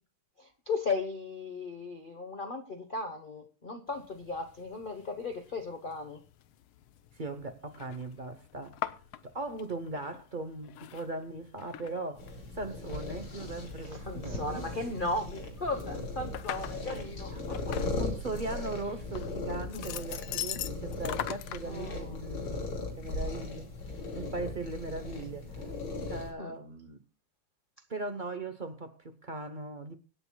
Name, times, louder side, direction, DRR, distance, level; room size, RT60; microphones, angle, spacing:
voice 1, 0.4-6.2 13.8-17.8 19.7-20.0 21.7-22.3 26.4-26.5, left 3 dB, 35° left, 0.8 m, -36 dB
sound 1, 3.9-21.6, left 12 dB, 90° left, 1.6 m, -44 dB
voice 2, 7.1-8.8 9.2-12.3 12.5-14.7 17.3-17.4 18.0-22.7 23.0-23.7 23.9-25.7 26.1-27.0 27.9-29.9, right 2 dB, 55° right, 0.5 m, -39 dB
sound 2, 12.2-26.3, left 2 dB, 75° left, 3.6 m, -38 dB
25.0 x 9.4 x 2.3 m
omnidirectional pair, 2.3 m